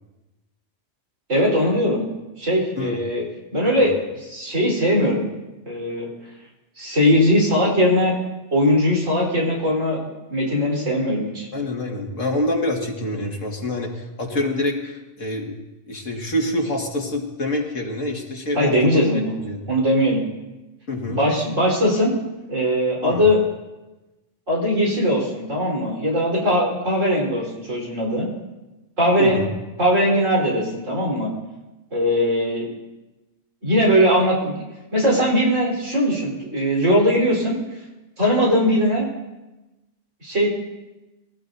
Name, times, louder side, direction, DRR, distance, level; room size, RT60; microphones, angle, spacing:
voice 1, 1.3-2.1 2.4-3.2 3.5-5.2 5.7-6.1 6.8-8.2 8.5-11.5 18.6-19.3 19.7-20.3 21.1-22.1 22.5-23.4 24.5-28.3 29.0-29.5 29.8-31.3 31.9-32.7 33.6-34.6 34.9-37.5 38.2-39.1 40.2-40.5, equal, 85° right, -3 dB, 4.6 m, -20 dB
voice 2, 11.5-15.6 15.9-19.7 20.9-21.2 23.0-23.3 29.2-29.5, left 1 dB, 90° left, 1 dB, 2.3 m, -26 dB
22.0 x 16.5 x 2.7 m, 1.1 s
omnidirectional pair, 1.3 m